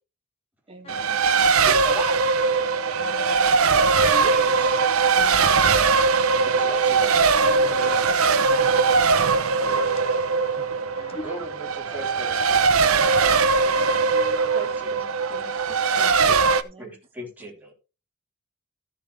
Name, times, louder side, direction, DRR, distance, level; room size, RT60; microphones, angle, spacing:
voice 1, 0.7-1.2 14.5-16.9, right 2 dB, 25° right, 2.6 m, -45 dB
Race car auto racing, 0.9-16.6, right 4 dB, 85° right, 0.8 m, -20 dB
voice 2, 1.6-2.3 4.0-4.8 6.3-8.0 11.2-13.4 14.3-14.9 16.2-16.4 16.8-17.7, right 2 dB, 10° right, 3.7 m, -37 dB
voice 3, 3.0-3.7 5.2-6.1 7.3-7.7 8.8-9.2 9.6-11.3 13.3-13.4 13.7-14.5, left 2 dB, 30° left, 0.7 m, -42 dB
14.5 x 7.1 x 3.4 m
head